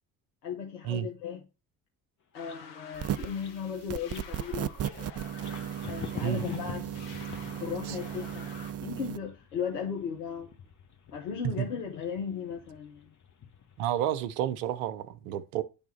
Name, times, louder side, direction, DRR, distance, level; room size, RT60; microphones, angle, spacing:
voice 1, 0.4-1.4 2.3-4.7 5.8-7.0 7.6-8.5 8.8-10.5 11.1-13.1, left 7 dB, 85° left, 1.1 m, -36 dB
sound 1, 2.3-8.7, left 5 dB, 65° left, 1.8 m, -49 dB
sound 2, 2.3-3.0 3.2-3.6 4.0-4.4 4.8-14.2, left 7 dB, 40° left, 1.4 m, -48 dB
sound 3, 2.9-3.4 3.9-9.2, right 10 dB, 35° right, 0.5 m, -36 dB
voice 2, 13.8-15.6, right 11 dB, 75° right, 0.8 m, -30 dB
10.0 x 3.6 x 4.3 m
hypercardioid pair, 50°, 47 cm